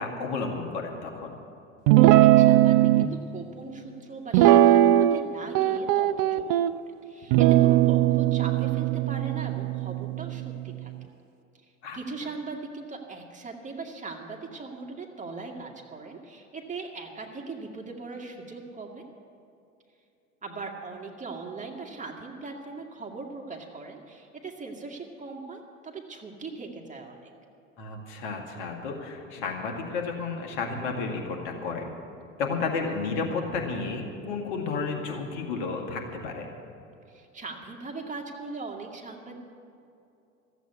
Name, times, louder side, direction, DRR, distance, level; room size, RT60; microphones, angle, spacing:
voice 1, 0.0-1.3 11.8-12.0 27.8-31.9 32.4-36.5, left 4 dB, 65° left, 2 dB, 2.2 m, -32 dB
Guitar, 1.9-3.1 4.3-5.3 5.5-6.7 7.3-10.8, right 14 dB, 55° right, 0.5 m, -20 dB
voice 2, 2.0-10.9 11.9-19.0 20.4-27.3 37.1-39.4, right 4 dB, 20° right, 1 dB, 2.0 m, -40 dB
14.5 x 8.2 x 9.6 m, 2.6 s
hypercardioid pair, 80°, 40 cm